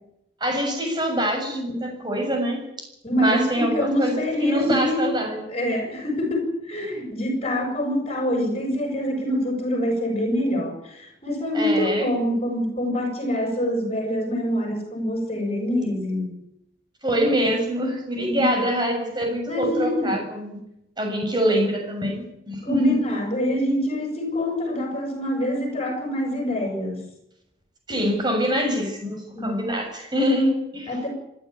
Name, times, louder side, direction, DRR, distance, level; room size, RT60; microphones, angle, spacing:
voice 1, 0.4-2.6 3.2-5.4 11.5-12.1 17.0-20.5 21.0-23.0 27.9-30.9, equal, 20° right, 2 dB, 7.1 m, -24 dB
voice 2, 3.0-5.0 5.5-16.3 18.3-18.5 19.5-20.1 22.6-27.0 29.3-29.6 30.9-31.1, left 1 dB, 30° left, 3 dB, 7.3 m, -25 dB
26.0 x 12.0 x 10.0 m, 0.84 s
head